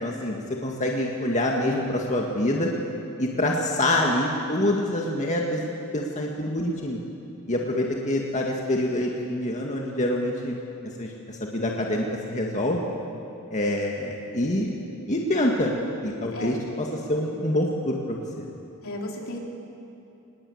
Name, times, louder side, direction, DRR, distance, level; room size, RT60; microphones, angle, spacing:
voice 1, 0.0-2.7 3.2-5.6 5.9-7.0 7.5-10.6 11.0-12.8 13.5-14.7 15.1-15.7 16.0-18.5, left 1 dB, 35° left, -1 dB, 1.9 m, -26 dB
voice 2, 18.8-19.4, left 1 dB, 70° left, -1 dB, 4.0 m, -34 dB
25.0 x 20.5 x 8.6 m, 2.7 s
head